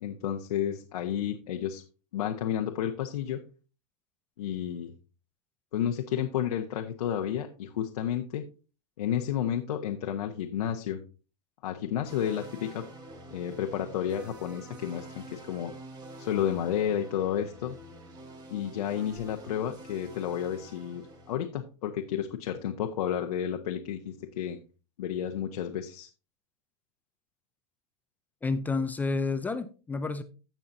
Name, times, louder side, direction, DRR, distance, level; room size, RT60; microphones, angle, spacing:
voice 1, 0.0-1.8 2.1-3.4 4.4-4.9 5.7-8.4 9.0-11.0 11.6-12.8 13.3-15.7 16.2-17.8 18.5-24.6 25.0-26.1, left 9 dB, 80° left, 3 dB, 1.1 m, -31 dB
sound 1, 12.0-21.4, right 1 dB, 20° right, 1.7 m, -47 dB
voice 2, 28.4-30.2, left 3 dB, 10° left, 11 dB, 0.4 m, -30 dB
16.5 x 5.7 x 2.7 m, 0.34 s
supercardioid pair, 140°, 19 cm